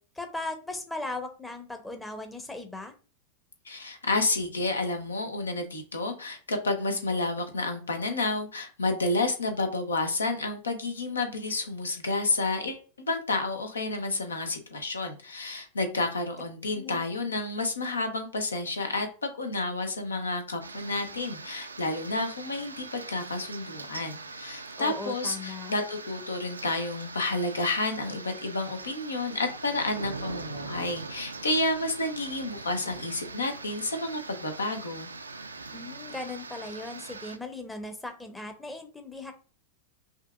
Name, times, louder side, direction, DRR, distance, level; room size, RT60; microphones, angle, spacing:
voice 1, 0.2-2.9 16.7-17.0 24.8-25.7 35.7-39.3, left 2 dB, 10° left, 6 dB, 0.7 m, -38 dB
voice 2, 3.7-35.1, left 2 dB, 75° left, 7 dB, 0.7 m, -30 dB
sound 1, 20.6-37.4, right 3 dB, 80° right, 0.4 m, -42 dB
5.5 x 2.5 x 2.4 m, 0.39 s
figure-of-eight pair, 90°, 0 cm